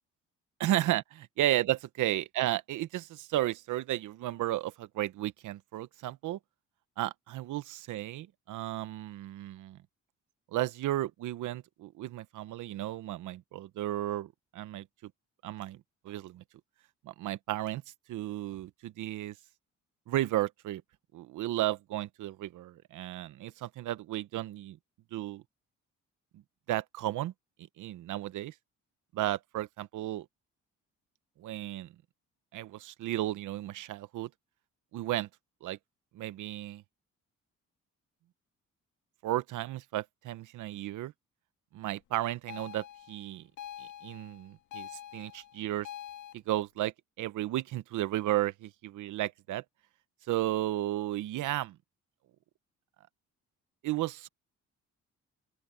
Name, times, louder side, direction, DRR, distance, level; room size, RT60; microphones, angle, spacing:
voice 1, 0.6-6.4 7.0-9.8 10.5-15.1 15.4-16.4 17.0-17.8 18.1-19.3 20.1-20.8 21.1-24.8 25.1-25.4 26.3-26.4 26.7-27.3 27.6-28.5 29.1-30.3 31.4-31.9 32.5-34.3 34.9-35.3 35.6-35.8 36.1-36.8 39.2-41.1 41.7-43.5 43.8-45.9 46.3-49.6 50.3-51.8 53.8-54.3, right 14 dB, 80° right, 1.0 m, -34 dB
sound 1, 42.5-46.3, left 11 dB, 85° left, 2.1 m, -45 dB
open air
cardioid pair, 90°, 30 cm